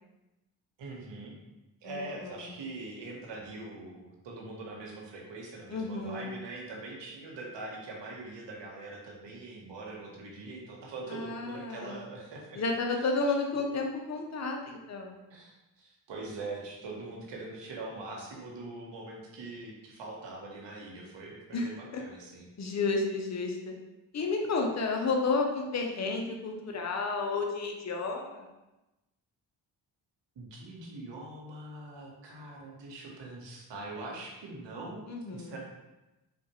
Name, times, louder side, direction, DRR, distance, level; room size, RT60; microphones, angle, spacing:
voice 1, 0.8-1.3 1.8-12.6 12.9-13.1 13.5-13.7 15.3-22.5 30.4-35.0 35.3-35.6, right 2 dB, 70° right, -1 dB, 1.0 m, -43 dB
voice 2, 1.8-2.4 5.7-6.3 11.1-12.1 12.6-15.2 21.5-22.0 22.6-23.7 24.1-28.5 35.1-35.6, left 3 dB, 40° left, 2 dB, 0.7 m, -32 dB
3.6 x 2.5 x 2.9 m, 1.0 s
supercardioid pair, 50°, 44 cm